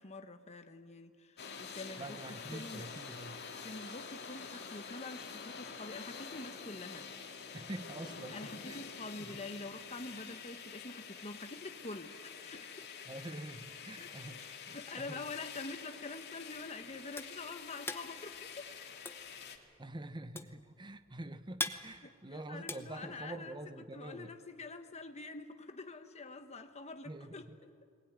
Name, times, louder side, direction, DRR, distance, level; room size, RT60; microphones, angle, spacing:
voice 1, 0.0-2.2 2.5-2.9 3.6-7.1 8.3-12.9 14.0-14.1 14.4-18.7 22.0-27.5, left 3 dB, 30° left, 7 dB, 1.1 m, -46 dB
sound 1, 1.4-19.6, left 6 dB, 55° left, 2.1 m, -47 dB
voice 2, 2.0-3.4 7.5-8.8 9.2-9.4 13.1-15.2 19.8-24.3 27.0-27.6, right 1 dB, 20° right, 12 dB, 0.8 m, -46 dB
sound 2, 16.5-23.7, left 3 dB, 10° left, 0.9 m, -43 dB
21.0 x 20.0 x 9.4 m, 2.2 s
head